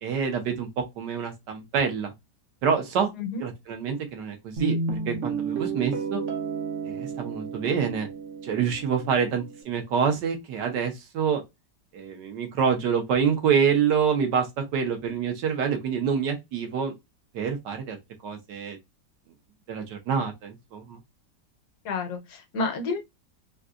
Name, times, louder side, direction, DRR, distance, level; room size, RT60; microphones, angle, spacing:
voice 1, 0.0-2.1 2.6-3.1 3.4-4.7 5.1-6.2 6.8-8.1 8.4-11.4 11.9-16.9 17.3-18.0 18.2-18.8 19.7-21.0, right 7 dB, 75° right, 1.4 m, -26 dB
Guitar, 4.6-9.6, right 5 dB, 55° right, 0.9 m, -32 dB
voice 2, 21.8-23.0, left 4 dB, 65° left, 1.2 m, -30 dB
3.9 x 2.3 x 2.4 m
omnidirectional pair, 1.9 m